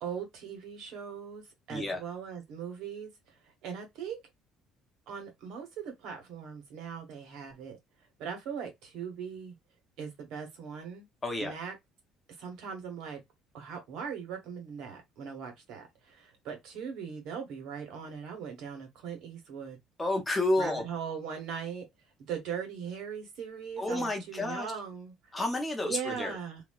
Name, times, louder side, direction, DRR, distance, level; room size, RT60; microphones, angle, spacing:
voice 1, 0.0-3.1 3.4-4.2 5.1-7.8 8.2-9.5 10.0-11.1 11.4-11.7 12.4-13.2 13.5-19.8 20.6-21.8 22.3-25.1 25.8-26.6, right 7 dB, 65° right, 1.5 m, -39 dB
voice 2, 11.2-11.5 20.0-20.8 23.8-24.7 25.3-26.4, left 2 dB, 10° left, 0.6 m, -30 dB
3.0 x 2.8 x 2.3 m
cardioid pair, 180°, 0 cm